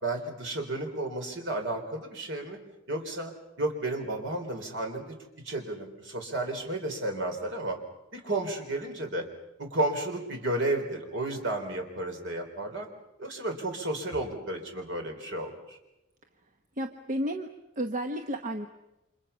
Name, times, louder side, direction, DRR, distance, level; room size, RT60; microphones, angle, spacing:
voice 1, 0.0-2.6 2.9-3.3 3.6-5.0 5.4-7.8 8.1-9.3 9.6-12.9 13.2-15.8, right 1 dB, 60° right, 3 dB, 3.9 m, -32 dB
voice 2, 16.8-18.7, equal, 35° right, 5 dB, 1.1 m, -32 dB
29.5 x 26.0 x 5.7 m, 0.94 s
head